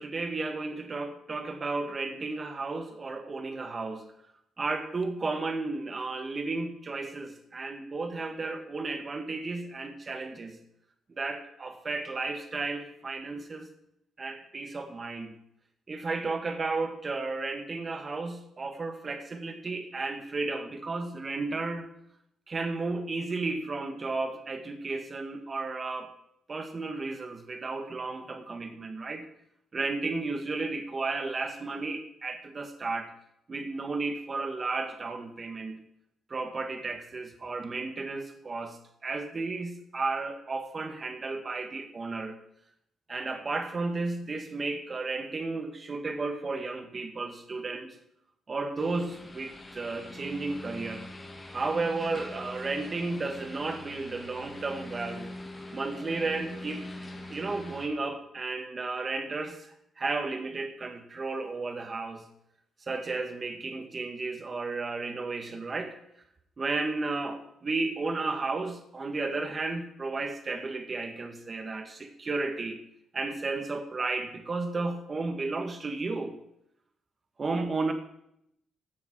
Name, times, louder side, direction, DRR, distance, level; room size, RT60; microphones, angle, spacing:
voice 1, 0.0-4.1 4.6-10.6 11.1-13.7 14.2-15.4 15.9-21.9 22.5-26.1 26.5-29.2 29.7-33.1 33.5-35.8 36.3-38.8 39.0-42.4 43.1-47.9 48.5-51.1 51.5-55.3 55.7-56.8 57.3-62.2 62.9-66.0 66.6-72.8 73.1-76.3 77.4-77.9, right 3 dB, 35° right, 6 dB, 1.8 m, -33 dB
sound 1, 48.8-57.9, left 1 dB, 25° left, 1.9 m, -43 dB
16.5 x 7.1 x 4.8 m, 0.75 s
cardioid pair, 85°, 0 cm